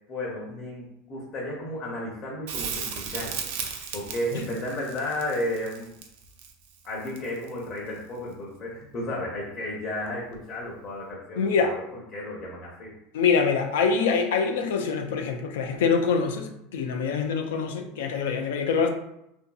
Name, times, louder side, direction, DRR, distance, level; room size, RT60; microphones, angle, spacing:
voice 1, 0.1-3.5 3.9-5.9 6.8-12.9, left 1 dB, 35° left, -4 dB, 0.7 m, -33 dB
Crackle, 2.5-7.6 10.3-10.4, right 7 dB, 70° right, 0.4 m, -35 dB
voice 2, 11.4-11.8 13.1-18.9, left 5 dB, 85° left, 4 dB, 0.3 m, -25 dB
2.7 x 2.6 x 2.3 m, 0.83 s
supercardioid pair, 130°, 0 cm